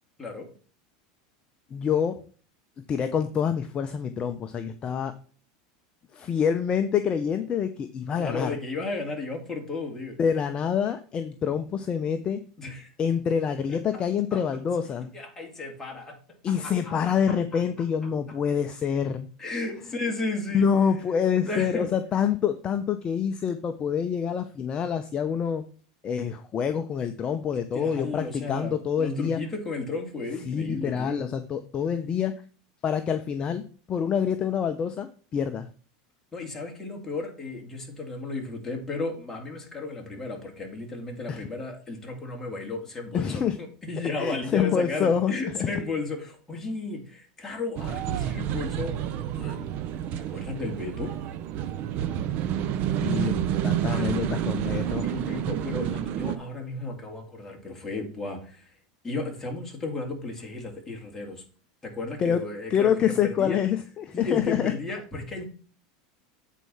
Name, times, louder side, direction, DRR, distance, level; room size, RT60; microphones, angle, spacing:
voice 1, 1.7-2.2 2.8-5.1 6.1-8.6 10.2-12.4 13.0-15.1 16.4-19.3 20.5-25.6 26.0-29.4 30.5-32.3 32.8-33.6 33.9-35.7 41.3-41.5 43.1-43.6 44.2-45.8 53.0-55.1 62.2-62.4 62.7-64.7, left 7 dB, 30° left, 8 dB, 0.7 m, -26 dB
voice 2, 8.2-10.2 12.6-12.9 14.3-14.6 15.1-16.2 16.5-17.0 19.4-20.7 21.4-21.9 27.7-31.2 36.3-43.4 43.8-48.9 49.4-49.7 50.3-51.1 53.9-54.1 55.0-58.7 59.0-61.4 61.8-63.6 64.1-65.4, left 3 dB, 10° left, 0 dB, 2.6 m, -34 dB
sound 1, 47.8-56.4, right 10 dB, 50° right, 0.8 m, -29 dB
8.2 x 4.6 x 5.5 m, 0.40 s
supercardioid pair, 125°, 3 cm